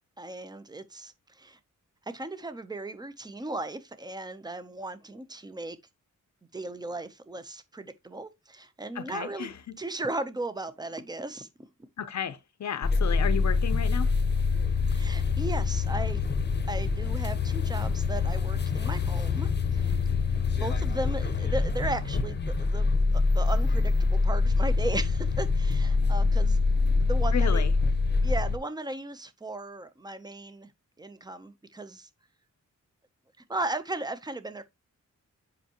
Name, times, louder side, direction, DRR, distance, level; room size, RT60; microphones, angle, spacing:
voice 1, 0.2-1.6 2.1-5.8 6.5-9.5 9.8-11.5 14.9-16.2 16.7-20.0 20.6-26.6 27.0-27.7 28.2-30.7 31.0-32.1 33.5-34.6, right 2 dB, 15° right, 0.6 m, -36 dB
voice 2, 8.9-9.8 12.0-14.1 27.3-27.7, left 8 dB, 60° left, 0.6 m, -33 dB
sound 1, 12.8-28.6, left 4 dB, 35° left, 0.8 m, -25 dB
7.9 x 5.5 x 2.9 m
wide cardioid pair, 165°, 31 cm